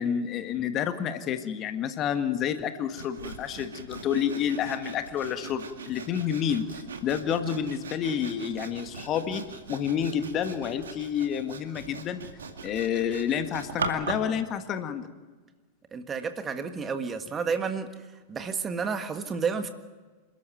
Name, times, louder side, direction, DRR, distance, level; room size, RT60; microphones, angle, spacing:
voice 1, 0.0-6.7 7.0-9.4 9.7-12.3 12.6-15.1, left 8 dB, 35° left, 9 dB, 1.7 m, -29 dB
Sawing, 3.0-14.3, right 4 dB, 70° right, 2.4 m, -40 dB
voice 2, 15.9-17.9 18.3-19.7, right 5 dB, 20° right, 8 dB, 1.6 m, -30 dB
28.0 x 13.5 x 9.2 m, 1.3 s
figure-of-eight pair, 90°, 0 cm